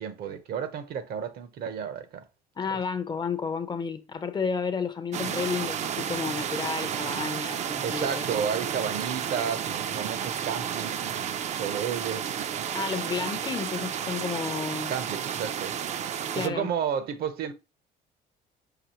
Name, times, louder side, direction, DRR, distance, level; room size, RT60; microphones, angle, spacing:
voice 1, 0.0-2.2 2.7-2.8 7.8-12.7 14.9-15.7 16.3-17.5, right 7 dB, 65° right, 0.7 m, -32 dB
voice 2, 2.6-8.3 12.7-14.9 16.3-16.7, left 5 dB, 25° left, 0.5 m, -31 dB
sound 1, 5.1-16.5, right 8 dB, 45° right, 0.4 m, -32 dB
5.9 x 2.8 x 2.9 m
cardioid pair, 110°, 17 cm